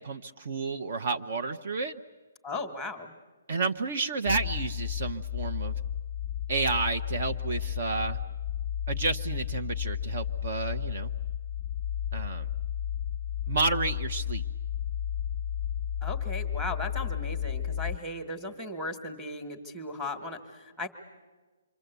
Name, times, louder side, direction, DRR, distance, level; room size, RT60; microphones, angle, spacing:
voice 1, 0.0-2.0 3.5-5.7 6.5-8.2 8.9-11.1 12.1-12.5 13.5-14.4, right 4 dB, 50° right, 7 dB, 0.9 m, -30 dB
voice 2, 2.4-3.1 16.0-20.9, left 2 dB, 5° right, 5 dB, 1.4 m, -37 dB
sound 1, 4.3-18.0, left 9 dB, 15° left, 0.7 m, -33 dB
27.0 x 24.0 x 8.1 m, 1.3 s
hypercardioid pair, 165°, 0 cm